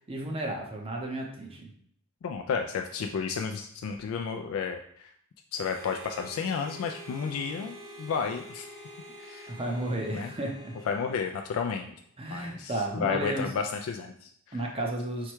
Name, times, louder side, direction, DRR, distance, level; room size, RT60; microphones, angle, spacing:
voice 1, 0.1-1.7 9.5-10.7 12.2-13.5 14.5-15.3, right 1 dB, 25° right, 0 dB, 0.7 m, -33 dB
voice 2, 2.2-5.1 5.5-8.7 9.2-9.5 10.1-10.3 10.9-11.9 12.3-14.6, left 6 dB, 70° left, 4 dB, 0.3 m, -32 dB
Harmonica, 5.5-11.9, equal, 85° right, 1.4 m, -47 dB
4.6 x 2.2 x 4.4 m, 0.65 s
head